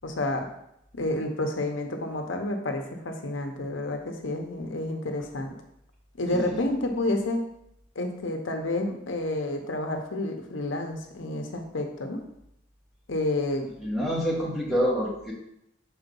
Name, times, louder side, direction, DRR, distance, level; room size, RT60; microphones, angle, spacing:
voice 1, 0.0-0.5 0.9-5.5 6.2-7.4 7.9-12.2 13.1-13.7, left 2 dB, 80° left, 3 dB, 0.9 m, -29 dB
voice 2, 13.8-15.3, equal, ahead, -6 dB, 1.8 m, -27 dB
6.5 x 4.0 x 5.3 m, 0.78 s
head